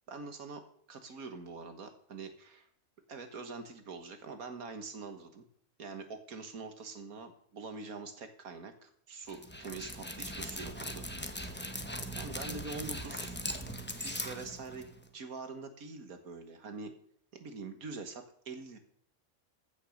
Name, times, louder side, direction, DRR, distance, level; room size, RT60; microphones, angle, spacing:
voice 1, 0.1-0.6 0.9-2.7 3.1-5.5 5.8-13.4 14.0-14.9 15.1-16.9 17.3-18.8, right 4 dB, 75° right, 7 dB, 2.0 m, -44 dB
Dog, 9.3-15.1, equal, 10° left, 0.9 m, -40 dB
15.5 x 6.5 x 6.5 m, 0.63 s
omnidirectional pair, 1.5 m